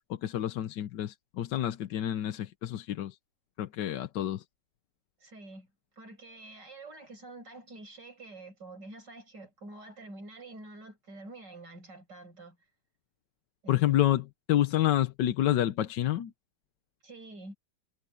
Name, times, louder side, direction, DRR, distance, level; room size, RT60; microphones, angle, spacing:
voice 1, 0.1-3.2 3.6-4.4 13.7-16.3, left 13 dB, 80° left, 1.4 m, -28 dB
voice 2, 5.2-5.7 6.0-12.6 13.6-14.0 17.0-17.6, right 2 dB, 75° right, 6.9 m, -47 dB
omnidirectional pair, 1.9 m